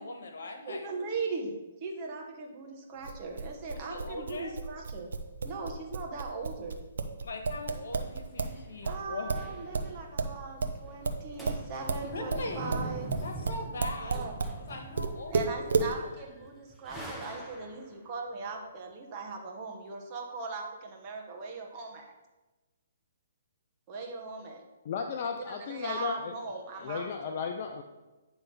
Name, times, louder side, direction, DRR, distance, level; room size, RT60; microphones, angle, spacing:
voice 1, 0.0-0.9 3.7-4.5 7.2-9.3 12.0-12.9 13.2-14.2 14.6-15.5, left 2 dB, 75° left, 4 dB, 1.5 m, -40 dB
voice 2, 0.7-5.1 5.4-6.8 8.8-13.1 14.0-14.3 15.3-22.1 23.9-24.6 25.4-27.0, right 4 dB, 30° right, 1 dB, 1.2 m, -39 dB
sound 1, 3.0-8.6 8.8-14.6 15.0-15.9, right 4 dB, 75° right, 0.8 m, -32 dB
sound 2, 7.7-10.2 10.4-10.5 10.8-11.1 11.3-17.9, right 1 dB, ahead, 0.8 m, -44 dB
voice 3, 24.8-26.3 26.7-27.8, left 6 dB, 40° left, 4 dB, 0.5 m, -34 dB
9.7 x 3.4 x 5.5 m, 1.1 s
hypercardioid pair, 155°, 0 cm